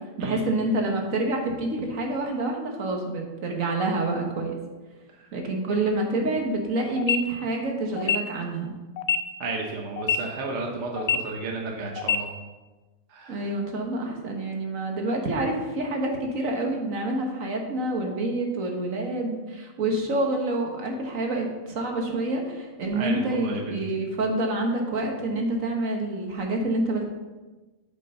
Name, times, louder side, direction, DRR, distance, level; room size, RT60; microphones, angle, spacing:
voice 1, 0.2-4.6 5.3-8.7 13.3-27.0, right 2 dB, 75° right, 2 dB, 1.7 m, -27 dB
sound 1, 7.0-7.2 8.0-8.2 9.0-9.2 10.0-10.2 11.0-11.2 12.0-12.2, left 8 dB, 60° left, 0.8 m, -23 dB
voice 2, 9.4-12.3 13.1-13.5 22.9-23.8, right 3 dB, 60° right, 1 dB, 1.3 m, -33 dB
8.2 x 5.5 x 5.5 m, 1.2 s
omnidirectional pair, 1.4 m